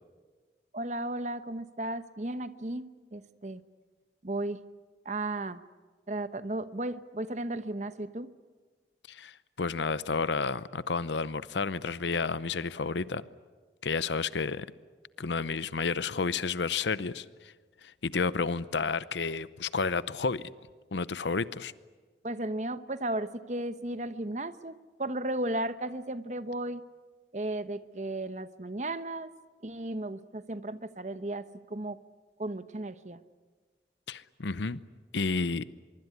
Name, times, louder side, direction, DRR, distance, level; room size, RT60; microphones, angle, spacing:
voice 1, 0.7-3.6 4.2-4.6 5.0-5.6 6.1-8.3 22.2-26.8 27.3-29.3 29.6-32.0 32.4-33.2, right 1 dB, 40° right, 12 dB, 0.9 m, -35 dB
voice 2, 9.1-13.3 13.8-14.7 15.2-17.5 17.8-20.4 20.9-21.7 34.1-34.8 35.1-35.6, left 4 dB, 85° left, 16 dB, 0.7 m, -31 dB
24.5 x 23.5 x 9.7 m, 1.4 s
head